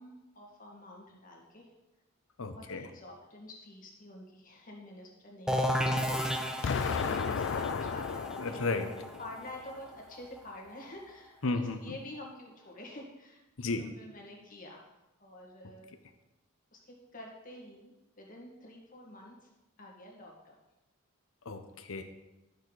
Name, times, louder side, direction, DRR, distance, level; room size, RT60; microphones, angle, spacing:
voice 1, 0.0-1.7 2.5-8.6 9.2-13.4 13.8-14.9 15.2-15.9 16.7-19.5 19.8-20.6, left 1 dB, 40° left, -1 dB, 1.8 m, -48 dB
voice 2, 2.4-2.9 5.5-6.1 8.4-8.9 11.4-12.0 13.6-14.0 21.4-22.0, left 3 dB, 75° left, 8 dB, 0.9 m, -34 dB
sound 1, 5.5-11.1, equal, 5° right, 0.5 m, -34 dB
Explosion, 6.6-9.6, left 6 dB, 55° left, 0.4 m, -34 dB
12.0 x 6.5 x 4.0 m, 1.0 s
head